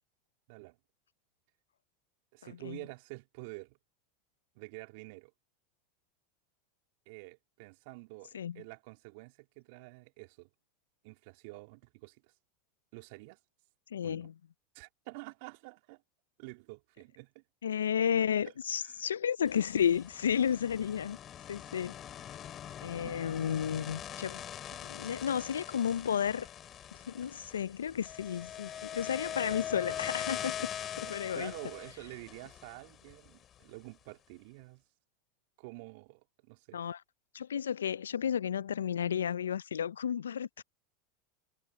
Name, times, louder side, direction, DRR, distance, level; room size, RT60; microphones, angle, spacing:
voice 1, 2.3-3.8 4.5-5.3 7.0-10.5 11.0-12.3 12.9-13.4 14.0-14.3 14.7-16.0 16.4-17.4 18.4-18.5 18.8-19.1 23.0-23.2 24.7-25.0 31.0-34.8 35.6-36.8, right 27 dB, 60° right, 3.2 m, -48 dB
voice 2, 13.9-14.3 17.6-21.2 21.5-22.0 22.8-24.4 24.9-26.5 27.1-30.7 31.0-31.5 36.7-37.0 37.3-40.6, left 8 dB, 85° left, 0.5 m, -32 dB
sound 1, 19.4-33.6, left 10 dB, 35° left, 4.8 m, -43 dB
hypercardioid pair, 90°, 0 cm